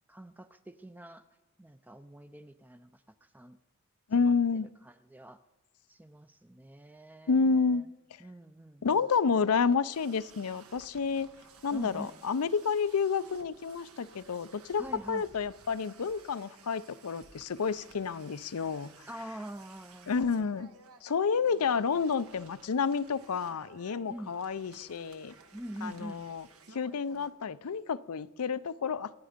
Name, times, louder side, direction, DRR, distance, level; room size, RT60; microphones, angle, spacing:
voice 1, 0.1-1.2 1.6-3.6 4.1-5.4 5.9-7.9 8.2-9.0 11.7-12.2 14.8-15.3 19.1-20.7 24.1-24.4 25.5-26.2, right 1 dB, 10° right, 0.4 m, -45 dB
voice 2, 4.1-4.7 7.3-7.8 8.8-11.3 11.6-18.9 20.1-20.7 21.0-25.3 25.8-26.4 26.7-29.1, left 5 dB, 90° left, 0.5 m, -30 dB
sound 1, 9.9-27.3, right 4 dB, 85° right, 1.6 m, -56 dB
27.0 x 9.5 x 5.2 m
head